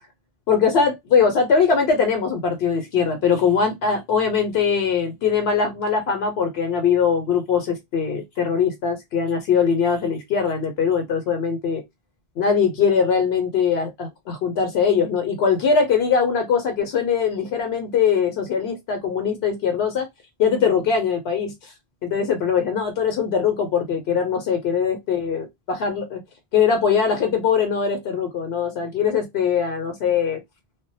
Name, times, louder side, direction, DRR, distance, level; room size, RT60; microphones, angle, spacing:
voice 1, 0.5-11.8 12.4-20.1 20.4-21.7 22.0-26.2 26.5-30.4, left 6 dB, 75° left, 0.8 m, -21 dB
2.3 x 2.1 x 2.6 m
omnidirectional pair, 1.1 m